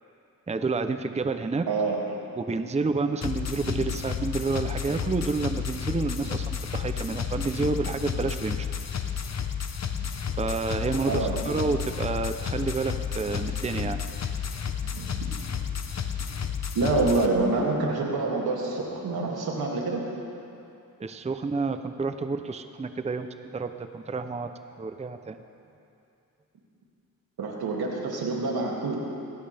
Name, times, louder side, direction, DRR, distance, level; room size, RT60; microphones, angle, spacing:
voice 1, 0.5-1.7 2.4-8.7 10.4-14.0 21.0-24.5 24.8-25.4, right 4 dB, 20° right, 8 dB, 0.6 m, -29 dB
voice 2, 1.7-2.0 11.1-11.3 14.8-15.1 16.7-20.0 27.4-29.0, right 3 dB, 90° right, -2 dB, 2.6 m, -26 dB
sound 1, 3.2-17.3, left 7 dB, 45° left, 0.9 m, -31 dB
19.5 x 17.0 x 3.4 m, 2.6 s
cardioid pair, 90°, 36 cm